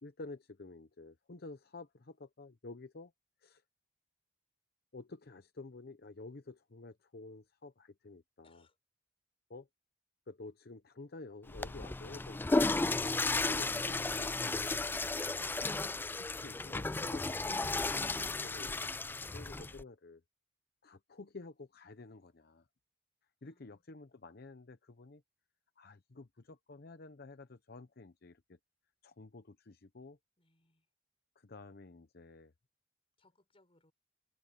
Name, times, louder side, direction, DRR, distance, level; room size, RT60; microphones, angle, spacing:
voice 1, 0.0-3.1 3.4-3.6 4.9-8.6 9.5-9.7 10.3-15.0 16.2-20.2 20.8-22.7 23.4-25.2 25.8-28.4 29.0-30.2 31.4-32.5, left 3 dB, 60° left, 0.8 m, -51 dB
voice 2, 8.4-8.8 23.4-23.8 30.4-30.9 33.2-33.9, left 2 dB, 30° left, 5.8 m, -70 dB
Water / Toilet flush, 11.5-19.8, left 3 dB, 10° left, 0.3 m, -34 dB
head